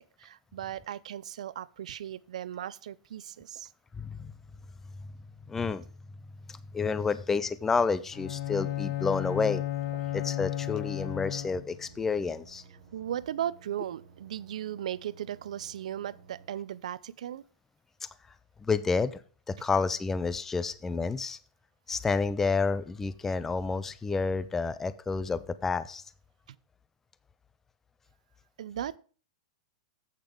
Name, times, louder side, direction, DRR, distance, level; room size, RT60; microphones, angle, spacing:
voice 1, 0.0-3.7 12.9-17.4 26.5-26.6 28.6-29.0, right 10 dB, 80° right, 0.5 m, -37 dB
voice 2, 4.0-4.3 5.5-5.8 6.5-9.6 10.1-12.6 18.0-18.1 18.6-19.2 19.5-21.4 21.9-26.0, left 4 dB, 10° left, 0.3 m, -29 dB
Bowed string instrument, 8.1-11.9, left 14 dB, 45° left, 0.7 m, -33 dB
sound 1, 8.5-16.5, right 6 dB, 50° right, 1.2 m, -55 dB
8.2 x 6.7 x 5.0 m
supercardioid pair, 160°, 4 cm